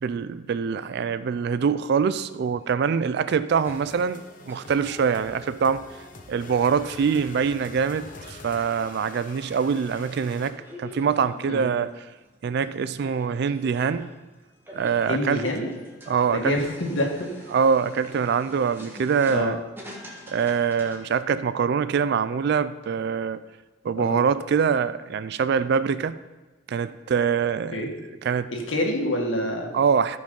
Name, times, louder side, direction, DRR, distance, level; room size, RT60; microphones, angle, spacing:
voice 1, 0.0-5.9 6.3-11.9 12.4-14.1 14.7-15.4 16.1-16.5 17.5-19.6 20.3-23.4 23.8-26.2 26.7-27.8 28.2-28.5 29.7-30.2, right 6 dB, 60° right, 14 dB, 0.3 m, -24 dB
sound 1, 2.6-21.2, left 1 dB, 10° right, 1.6 m, -48 dB
sound 2, 3.6-10.5, left 3 dB, 45° left, 1.0 m, -45 dB
voice 2, 15.0-15.7 16.3-17.3 19.3-19.6 23.9-24.2 27.7-27.9 28.5-29.7, left 1 dB, 85° left, 1 dB, 1.8 m, -27 dB
14.0 x 5.2 x 5.3 m, 1.2 s
head